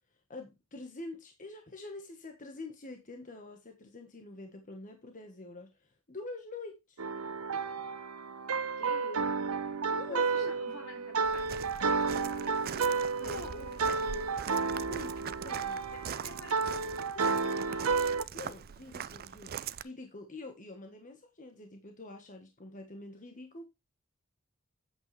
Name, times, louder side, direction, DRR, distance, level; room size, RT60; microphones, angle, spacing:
voice 1, 0.1-7.0 9.9-10.6 13.2-13.4 14.9-15.9 18.3-23.6, left 2 dB, 40° left, 1.4 m, -46 dB
sound 1, 7.0-18.2, right 4 dB, 90° right, 0.9 m, -32 dB
voice 2, 8.8-9.3 10.1-14.4 15.9-18.6, left 2 dB, 80° left, 3.7 m, -48 dB
Walk footsteps, 11.2-19.8, right 8 dB, 45° right, 0.4 m, -42 dB
8.6 x 8.1 x 3.3 m
head